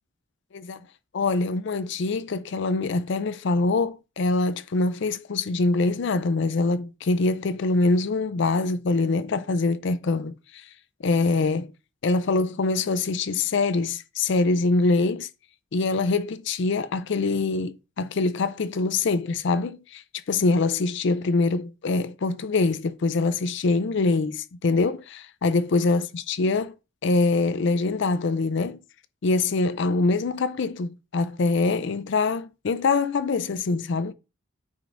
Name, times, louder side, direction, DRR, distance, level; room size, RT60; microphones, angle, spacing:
voice 1, 1.1-10.7 11.0-11.7 12.0-15.3 15.7-26.7 27.0-28.8 29.2-34.1, left 3 dB, 60° left, 0.4 m, -24 dB
9.0 x 5.1 x 2.6 m
head